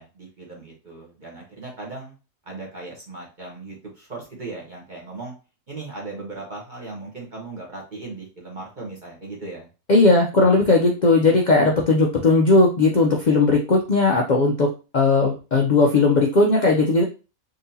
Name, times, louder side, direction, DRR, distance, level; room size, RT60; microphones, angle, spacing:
voice 1, 0.0-2.2 2.5-5.3 5.7-9.7, right 3 dB, 40° right, -2 dB, 1.0 m, -37 dB
voice 2, 9.9-14.7 14.9-17.0, left 3 dB, 70° left, 0 dB, 0.4 m, -17 dB
3.9 x 2.8 x 2.7 m, 0.32 s
omnidirectional pair, 1.5 m